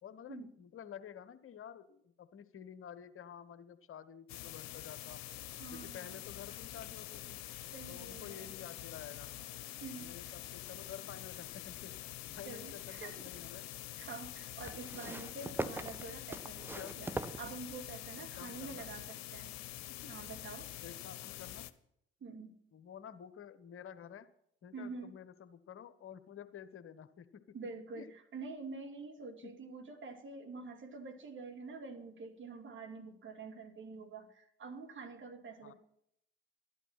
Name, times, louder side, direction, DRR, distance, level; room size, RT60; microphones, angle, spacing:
voice 1, 0.0-5.2 5.7-7.4 7.9-9.3 9.9-11.9 12.3-13.7 15.1-15.2 16.7-17.0 18.1-18.9 19.9-20.1 20.8-21.7 22.7-24.3 24.6-27.6 27.9-28.1 29.4-29.5 35.6-35.7, left 8 dB, 45° left, 13 dB, 1.2 m, -50 dB
sound 1, 4.3-21.7, left 14 dB, 60° left, 0.9 m, -46 dB
voice 2, 5.6-6.2 7.7-8.5 9.8-10.4 12.4-13.3 14.0-19.5 20.1-20.7 22.2-22.6 24.7-25.2 27.5-35.7, right 4 dB, 40° right, 4 dB, 2.6 m, -47 dB
sound 2, 12.7-13.5 14.6-18.1 19.0-19.1, right 2 dB, 5° right, 0.9 m, -43 dB
12.5 x 12.0 x 5.9 m, 0.73 s
figure-of-eight pair, 55°, 31 cm